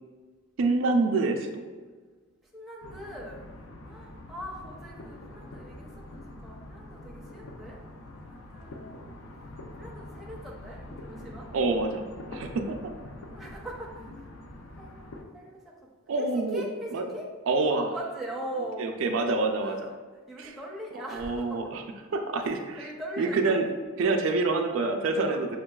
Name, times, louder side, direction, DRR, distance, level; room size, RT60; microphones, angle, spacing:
voice 1, 0.6-1.6 11.5-12.8 16.1-16.6 16.9-17.0 17.5-17.9 18.8-19.8 20.4-20.5 21.1-21.8 22.1-22.9 23.2-23.7 24.0-25.5, right 3 dB, 65° right, 4 dB, 0.3 m, -26 dB
voice 2, 2.5-3.4 3.9-7.8 8.2-8.9 9.8-11.5 12.4-12.6 13.1-14.1 14.8-15.7 16.1-17.3 17.9-18.9 19.6-19.8 20.1-21.7 22.4-23.6 24.0-24.3 25.2-25.4, right 1 dB, ahead, -4 dB, 0.5 m, -41 dB
sound 1, 2.8-15.2, left 1 dB, 60° left, 0.4 m, -45 dB
6.3 x 2.3 x 2.2 m, 1.4 s
head